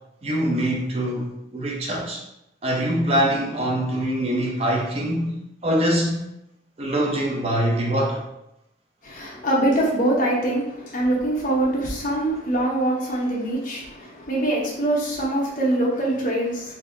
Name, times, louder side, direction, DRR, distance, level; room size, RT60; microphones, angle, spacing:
voice 1, 0.2-2.2 2.6-6.2 6.8-8.2, right 1 dB, 30° right, -2 dB, 0.6 m, -24 dB
voice 2, 9.0-16.7, right 1 dB, 45° left, -4 dB, 0.9 m, -23 dB
4.0 x 2.7 x 2.7 m, 0.84 s
head